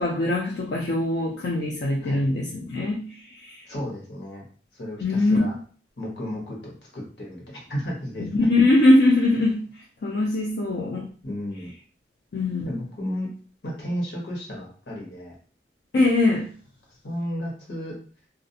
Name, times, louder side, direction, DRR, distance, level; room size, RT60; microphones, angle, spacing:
voice 1, 0.0-3.6 5.0-5.4 8.3-9.6 10.0-11.1 12.3-12.8 15.9-16.5, left 2 dB, 60° left, -2 dB, 0.4 m, -22 dB
voice 2, 3.6-4.4 4.7-5.5 6.0-8.3 11.2-11.7 12.6-13.3 13.6-15.3 17.0-17.9, equal, 85° left, -2 dB, 1.1 m, -33 dB
2.4 x 2.0 x 2.7 m, 0.42 s
head